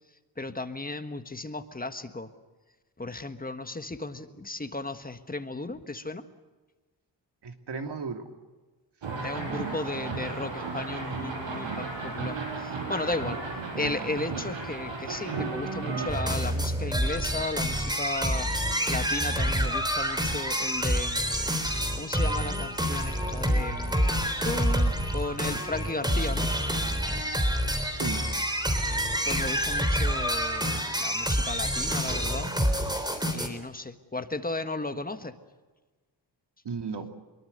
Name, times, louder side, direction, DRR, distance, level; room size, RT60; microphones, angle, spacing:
voice 1, 0.4-2.3 3.0-6.2 9.2-13.4 13.7-18.5 18.9-21.5 21.9-23.9 24.4-26.5 29.3-32.5 33.3-35.3, left 2 dB, 20° left, 8 dB, 1.6 m, -35 dB
voice 2, 7.4-8.3 9.5-10.2 27.9-28.2 36.6-37.1, right 5 dB, 65° right, 5 dB, 2.9 m, -36 dB
sound 1, 9.0-16.2, right 4 dB, 80° right, 5.9 m, -34 dB
sound 2, 16.1-33.5, equal, 10° right, 3.8 m, -27 dB
25.0 x 23.0 x 6.8 m, 1.3 s
wide cardioid pair, 105°, 44 cm